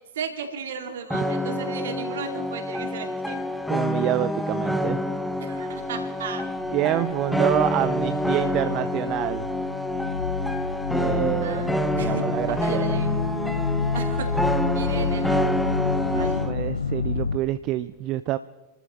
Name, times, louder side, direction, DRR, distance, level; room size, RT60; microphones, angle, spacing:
voice 1, 0.2-3.4 5.4-6.4 11.4-11.7 12.0-13.1 13.9-14.3 14.7-15.4 16.1-16.5, right 6 dB, 60° right, 5 dB, 2.2 m, -35 dB
sound 1, 1.1-16.5, left 1 dB, ahead, 0.8 m, -27 dB
voice 2, 3.7-5.0 6.7-9.5 10.9-13.1 16.1-18.4, right 15 dB, 40° right, 13 dB, 0.4 m, -27 dB
sound 2, 5.3-6.2 6.5-17.4, left 5 dB, 80° left, 0.6 m, -29 dB
29.0 x 14.0 x 3.0 m, 1.2 s
figure-of-eight pair, 90°, 0 cm